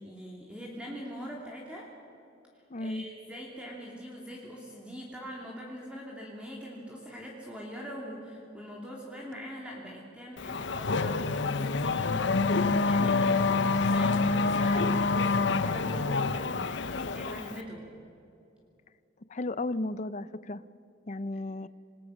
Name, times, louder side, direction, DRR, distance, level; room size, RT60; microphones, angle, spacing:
voice 1, 0.0-1.9 2.8-17.8, equal, 5° right, -3 dB, 3.0 m, -43 dB
voice 2, 2.7-3.0 19.3-20.6 21.1-21.7, left 2 dB, 40° left, 16 dB, 0.6 m, -34 dB
Race car auto racing / Accelerating revving vroom, 10.4-17.6, left 3 dB, 65° left, 0.9 m, -27 dB
27.0 x 20.5 x 6.5 m, 2.7 s
head